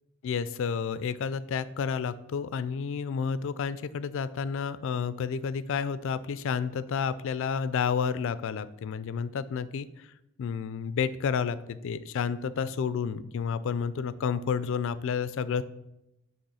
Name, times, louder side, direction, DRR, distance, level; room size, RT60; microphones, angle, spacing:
voice 1, 0.2-10.1 10.4-15.6, left 6 dB, 65° left, 15 dB, 0.3 m, -30 dB
7.1 x 3.0 x 5.4 m, 0.89 s
head